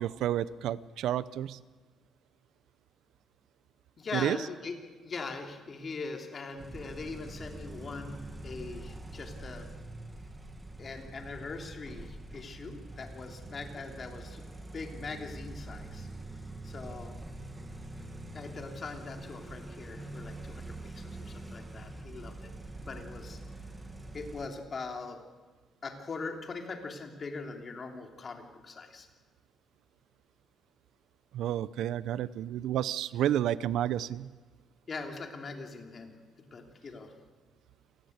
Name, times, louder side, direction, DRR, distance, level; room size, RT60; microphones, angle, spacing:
voice 1, 0.0-1.6 4.1-4.4 31.3-34.3, right 11 dB, 80° right, 17 dB, 0.7 m, -30 dB
voice 2, 4.0-9.7 10.8-14.5 14.7-16.1 16.6-17.2 18.3-22.5 22.9-23.4 24.1-25.2 25.8-29.1 34.9-37.2, left 4 dB, 30° left, 4 dB, 3.1 m, -41 dB
sound 1, 6.6-24.5, right 2 dB, 10° right, 2.1 m, -44 dB
28.5 x 19.5 x 8.1 m, 1.4 s
cardioid pair, 160°, 0 cm